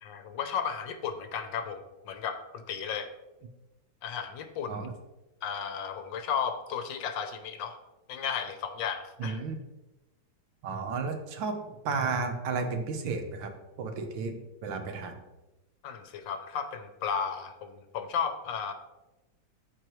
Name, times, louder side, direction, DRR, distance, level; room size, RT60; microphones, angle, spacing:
voice 1, 0.0-3.1 4.0-4.9 5.4-7.8 8.1-9.4 15.8-18.7, left 7 dB, 70° left, 8 dB, 1.3 m, -34 dB
voice 2, 9.2-9.6 10.6-13.5 13.8-15.1, right 4 dB, 70° right, 6 dB, 1.5 m, -33 dB
13.5 x 4.7 x 3.1 m, 1.1 s
omnidirectional pair, 2.2 m